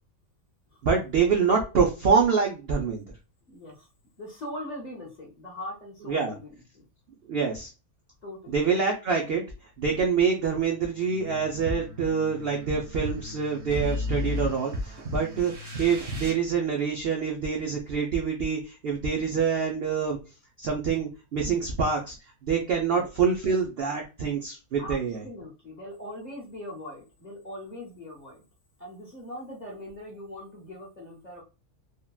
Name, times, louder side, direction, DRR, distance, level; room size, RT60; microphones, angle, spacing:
voice 1, 0.8-3.0 6.1-6.3 7.3-7.7 8.5-9.4 9.8-15.5 15.8-20.2 20.6-22.1 22.4-25.2, right 6 dB, 75° right, 1 dB, 0.5 m, -26 dB
voice 2, 3.5-3.9 4.2-6.8 8.2-8.6 22.9-23.1 24.8-28.4 28.8-31.4, left 1 dB, 35° left, -3 dB, 0.8 m, -41 dB
sound 1, 10.6-16.3, left 2 dB, 55° right, 0.9 m, -34 dB
3.5 x 2.2 x 2.3 m, 0.30 s
omnidirectional pair, 1.6 m